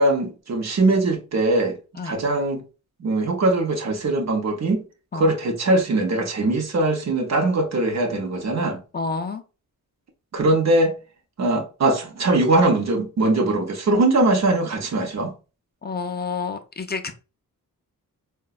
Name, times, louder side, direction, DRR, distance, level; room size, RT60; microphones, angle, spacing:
voice 1, 0.0-1.8 2.0-2.6 3.0-4.8 5.1-8.8 10.3-11.0 11.4-15.3, right 2 dB, 50° right, 0.7 m, -21 dB
voice 2, 8.9-9.4 15.8-17.1, left 4 dB, 30° left, 0.4 m, -29 dB
3.8 x 2.1 x 2.3 m
wide cardioid pair, 155°, 36 cm